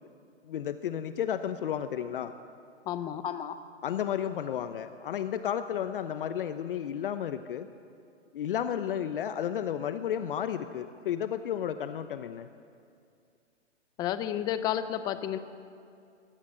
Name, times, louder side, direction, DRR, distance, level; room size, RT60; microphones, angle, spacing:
voice 1, 0.4-2.3 3.2-3.6 3.8-7.7 8.3-12.5, left 9 dB, 45° left, 10 dB, 1.0 m, -32 dB
voice 2, 2.9-3.2 14.0-15.4, left 11 dB, 10° left, 12 dB, 0.6 m, -31 dB
24.0 x 18.0 x 7.6 m, 2.4 s
hypercardioid pair, 135°, 36 cm